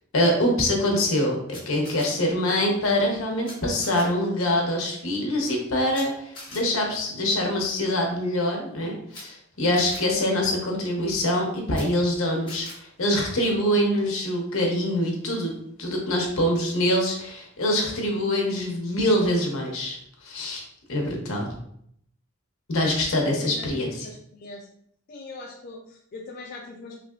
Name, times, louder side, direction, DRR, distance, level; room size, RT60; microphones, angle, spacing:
voice 1, 0.1-15.5 15.8-21.5 22.7-24.1, left 1 dB, 70° left, 0 dB, 0.8 m, -24 dB
Camera, 1.5-2.1 3.4-3.5 3.8-4.0 5.9-6.0 6.3-6.6 9.1-9.2 9.7-10.0 11.7-11.8 12.5-12.7, left 2 dB, 20° left, 1.2 m, -42 dB
voice 2, 23.3-24.7 25.1-27.0, left 2 dB, 45° left, -2 dB, 0.3 m, -41 dB
3.3 x 2.7 x 2.4 m, 0.70 s
head